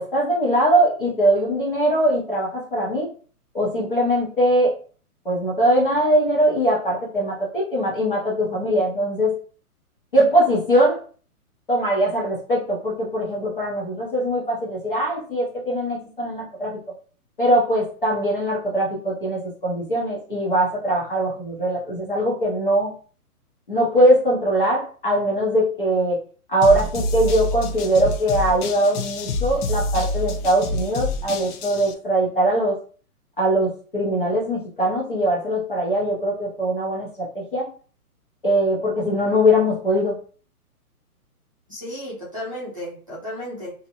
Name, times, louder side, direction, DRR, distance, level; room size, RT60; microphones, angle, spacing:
voice 1, 0.0-3.1 3.5-4.7 5.2-9.3 10.1-11.0 11.7-16.8 17.4-22.9 23.7-26.2 26.5-32.8 33.4-37.7 38.4-40.2, right 1 dB, 35° left, -4 dB, 0.6 m, -21 dB
sound 1, 26.6-31.9, left 2 dB, 80° left, 0.6 m, -27 dB
voice 2, 41.7-43.7, left 1 dB, 20° right, -9 dB, 0.6 m, -33 dB
2.6 x 2.0 x 2.8 m, 0.41 s
hypercardioid pair, 180°, 45 cm